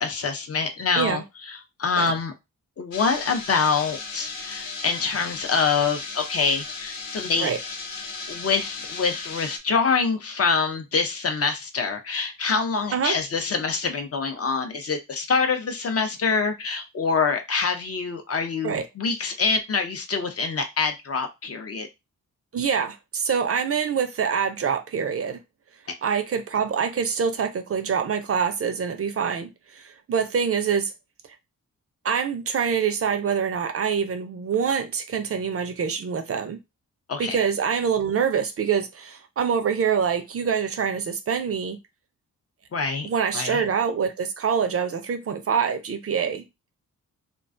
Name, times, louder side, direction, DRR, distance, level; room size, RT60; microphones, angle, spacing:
voice 1, 0.0-2.3 2.8-7.5 8.3-21.9 37.1-37.4 42.7-43.1 43.3-43.6, left 5 dB, 45° left, 0.5 m, -25 dB
sound 1, 2.9-9.6, left 4 dB, 85° left, 0.7 m, -36 dB
voice 2, 22.5-25.4 26.0-30.9 32.0-36.6 37.2-41.8 43.0-46.5, right 7 dB, 45° right, 0.4 m, -25 dB
2.3 x 2.2 x 2.4 m
wide cardioid pair, 95°, 33 cm